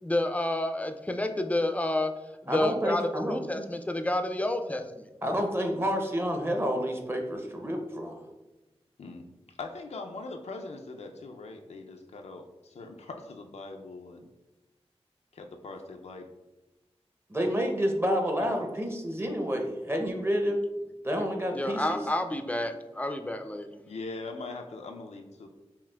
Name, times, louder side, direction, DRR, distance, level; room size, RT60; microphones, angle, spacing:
voice 1, 0.0-2.1 2.4-5.1 21.5-23.8, left 1 dB, 15° left, 7 dB, 0.4 m, -29 dB
voice 2, 2.5-3.4 5.2-8.2 17.3-20.6 21.0-22.0, equal, 20° right, 3 dB, 0.7 m, -29 dB
voice 3, 9.6-14.3 15.3-16.3 18.4-18.6 23.9-25.5, left 3 dB, 80° left, 4 dB, 0.4 m, -41 dB
5.6 x 2.4 x 2.3 m, 1.1 s
wide cardioid pair, 55°, 11 cm